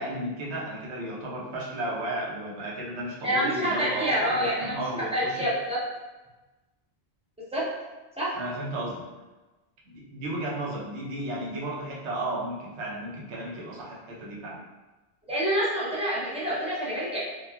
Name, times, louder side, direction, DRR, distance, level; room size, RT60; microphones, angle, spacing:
voice 1, 0.0-5.4 8.3-9.1 9.8-14.6, right 1 dB, 90° right, -4 dB, 1.0 m, -34 dB
voice 2, 3.2-5.8 7.5-7.6 8.2-8.4 15.3-17.2, equal, 5° right, -9 dB, 0.5 m, -27 dB
2.9 x 2.3 x 2.2 m, 1.2 s
omnidirectional pair, 1.1 m